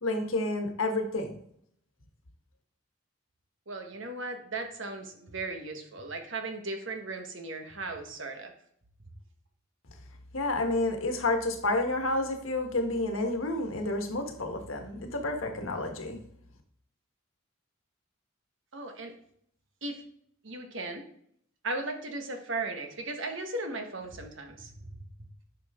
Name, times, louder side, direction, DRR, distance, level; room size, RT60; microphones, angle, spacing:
voice 1, 0.0-1.4 10.3-16.2, left 2 dB, 85° left, 5 dB, 1.4 m, -30 dB
voice 2, 3.7-8.5 18.7-19.1 19.8-20.0 20.4-21.1 21.6-24.9, right 2 dB, 65° right, 5 dB, 1.3 m, -37 dB
11.0 x 5.7 x 3.6 m, 0.67 s
head